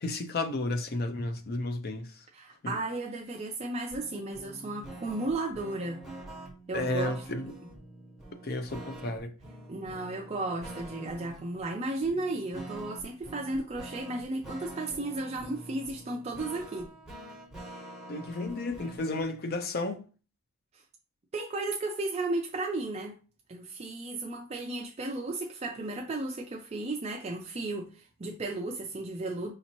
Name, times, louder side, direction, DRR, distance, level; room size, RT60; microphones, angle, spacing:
voice 1, 0.0-2.1 2.6-2.8 6.7-7.5 8.4-9.3 18.1-20.0, left 2 dB, 45° left, 0.5 m, -32 dB
voice 2, 2.3-6.0 6.7-7.2 9.7-16.9 21.3-23.1 23.5-29.5, right 2 dB, 30° right, 0.4 m, -34 dB
sound 1, 3.9-19.2, right 2 dB, ahead, 1.0 m, -46 dB
5.0 x 2.7 x 2.9 m
head